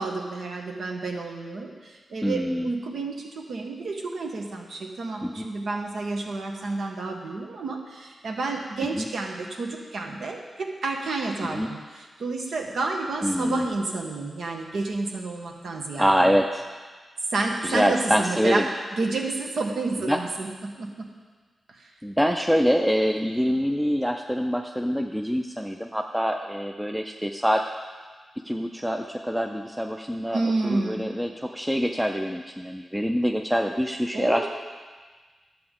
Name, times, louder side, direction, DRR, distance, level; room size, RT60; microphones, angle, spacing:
voice 1, 0.0-16.3 17.3-18.6 19.0-21.1 21.7-21.9 30.3-31.1 34.1-34.5, right 3 dB, 75° right, 1 dB, 1.2 m, -30 dB
voice 2, 2.2-2.7 5.2-5.5 8.8-9.1 11.4-11.7 13.2-13.7 16.0-16.6 17.6-18.7 20.0-20.2 22.0-27.7 28.4-34.5, equal, 5° right, 3 dB, 0.4 m, -25 dB
12.0 x 7.7 x 3.7 m, 1.4 s
wide cardioid pair, 105°, 0 cm